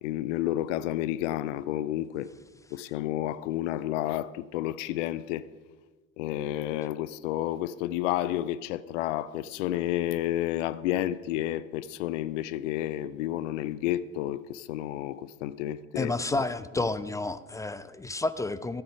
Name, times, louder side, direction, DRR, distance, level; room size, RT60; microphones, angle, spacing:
voice 1, 0.0-2.3 2.7-5.4 6.2-16.4, left 13 dB, 65° left, 0.6 m, -31 dB
voice 2, 16.0-18.8, left 2 dB, 10° left, 0.3 m, -30 dB
14.0 x 7.9 x 5.9 m
figure-of-eight pair, 65°, 41 cm